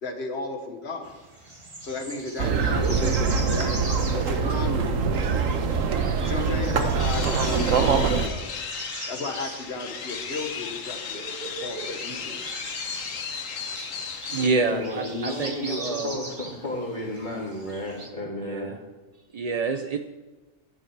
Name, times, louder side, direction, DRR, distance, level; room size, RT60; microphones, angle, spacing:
voice 1, 0.0-1.1 1.8-3.7 4.1-5.3 6.2-8.5 9.1-12.5, left 3 dB, 55° left, 5 dB, 1.6 m, -34 dB
sound 1, 1.0-18.1, right 2 dB, 25° right, 1.5 m, -41 dB
sound 2, 2.4-8.3, right 5 dB, 85° right, 1.4 m, -23 dB
sound 3, 7.0-14.5, left 6 dB, 80° left, 1.4 m, -35 dB
voice 2, 11.1-11.9 14.3-16.2 18.4-18.8 19.3-20.0, right 4 dB, 50° right, 7 dB, 0.4 m, -28 dB
voice 3, 14.6-18.7, left 1 dB, 35° left, -3 dB, 3.2 m, -33 dB
12.0 x 11.0 x 4.7 m, 1.2 s
omnidirectional pair, 1.3 m